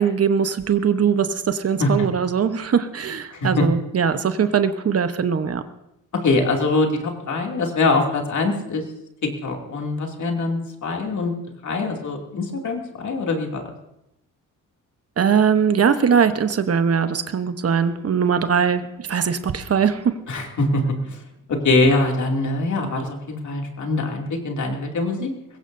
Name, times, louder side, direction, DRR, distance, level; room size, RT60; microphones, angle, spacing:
voice 1, 0.0-5.6 15.2-18.8 19.1-20.1, right 7 dB, 45° right, 10 dB, 1.0 m, -20 dB
voice 2, 3.3-3.6 6.2-8.8 9.4-11.3 11.6-13.7 20.3-21.2 21.5-25.3, left 2 dB, 60° left, 1 dB, 2.6 m, -23 dB
21.0 x 16.5 x 2.7 m, 0.86 s
cardioid pair, 85°, 32 cm